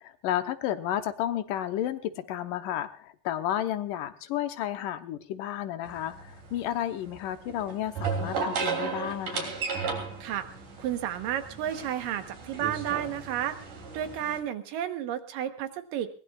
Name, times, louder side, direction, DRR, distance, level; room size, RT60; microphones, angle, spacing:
voice 1, 0.0-9.5, left 11 dB, 85° left, 9 dB, 2.5 m, -32 dB
sound 1, 5.8-14.4, right 5 dB, 70° right, 4.6 m, -35 dB
voice 2, 10.8-13.6 13.9-16.1, right 10 dB, 85° right, 8 dB, 2.9 m, -32 dB
22.5 x 19.0 x 2.4 m, 0.40 s
omnidirectional pair, 3.8 m